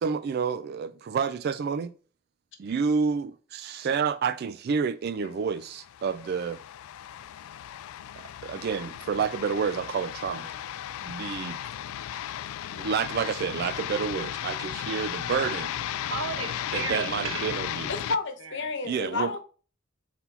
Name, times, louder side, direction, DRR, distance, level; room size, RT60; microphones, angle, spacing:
voice 1, 0.0-1.9 2.6-6.6 8.2-10.5 11.0-11.7 12.7-15.7 16.7-17.9 18.8-19.3, right 6 dB, 50° right, 0.3 m, -29 dB
sound 1, 5.6-18.2, left 11 dB, 90° left, 0.3 m, -35 dB
voice 2, 15.7-17.5 18.4-18.7, right 4 dB, 65° right, 1.1 m, -35 dB
voice 3, 17.9-19.4, left 3 dB, 60° left, 1.1 m, -31 dB
4.3 x 4.1 x 5.5 m
head